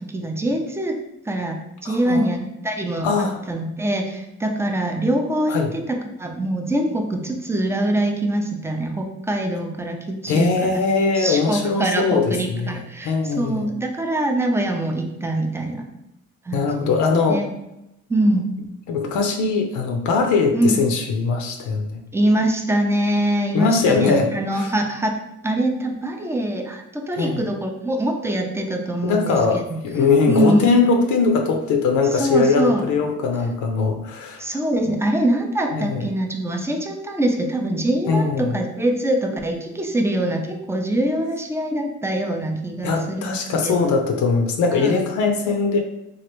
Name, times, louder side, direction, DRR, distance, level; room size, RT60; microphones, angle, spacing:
voice 1, 0.1-1.0 1.3-10.8 11.2-15.9 16.5-17.0 17.3-17.5 18.1-18.5 20.5-20.8 22.1-25.2 25.4-29.4 29.7-29.8 30.3-30.7 32.1-32.9 34.4-43.9 44.7-45.0, right 1 dB, 10° right, 3 dB, 0.4 m, -23 dB
voice 2, 1.8-2.3 3.0-3.4 5.5-5.7 10.3-13.7 16.5-17.4 18.9-22.0 23.5-24.7 27.2-27.4 29.0-34.4 34.9-35.0 35.7-36.1 38.1-38.6 42.8-45.8, left 4 dB, 75° left, 4 dB, 0.5 m, -21 dB
3.1 x 2.4 x 3.0 m, 0.87 s
cardioid pair, 90°, 30 cm